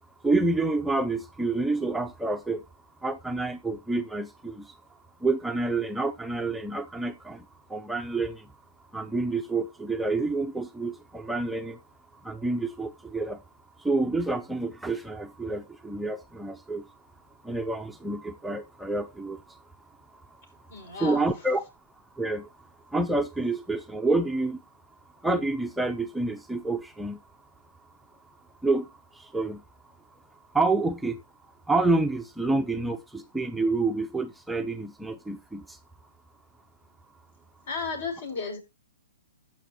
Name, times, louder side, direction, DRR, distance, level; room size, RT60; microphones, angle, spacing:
voice 1, 0.2-2.6 3.0-4.6 5.2-7.4 7.7-8.4 8.9-11.8 12.2-13.4 13.8-16.8 17.5-19.4 21.0-21.6 22.2-22.5 22.9-24.6 25.2-27.2 28.6-28.8 29.3-29.6 30.5-31.2 31.7-35.6, right 3 dB, 5° right, 0.5 m, -28 dB
voice 2, 20.7-21.3 37.7-38.6, left 4 dB, 60° left, 6.3 m, -33 dB
16.0 x 5.9 x 3.0 m
hypercardioid pair, 140°, 0 cm